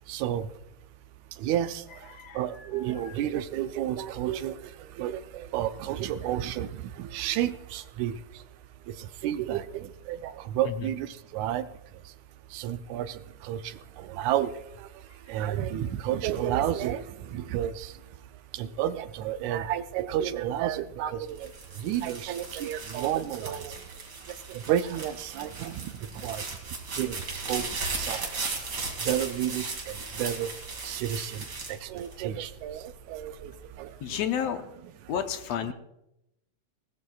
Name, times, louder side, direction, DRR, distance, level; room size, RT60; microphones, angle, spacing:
voice 1, 0.1-0.5 1.4-1.8 2.4-4.6 5.0-6.7 7.0-8.1 9.2-11.7 12.5-13.1 13.4-13.6 14.1-14.5 15.3-17.0 17.3-17.9 18.5-21.5 21.8-23.7 24.5-25.8 26.2-26.5 27.0-27.2 27.5-28.3 29.1-30.5 30.8-33.5 33.8-33.9, right 11 dB, 85° right, 11 dB, 2.0 m, -31 dB
voice 2, 2.1-3.2 10.7-10.9 34.0-34.6 35.1-35.7, left 9 dB, 70° left, 7 dB, 1.8 m, -32 dB
sound 1, 21.3-32.6 33.2-33.7, right 3 dB, 35° right, 2.9 m, -37 dB
20.5 x 19.0 x 2.3 m, 0.87 s
omnidirectional pair, 3.3 m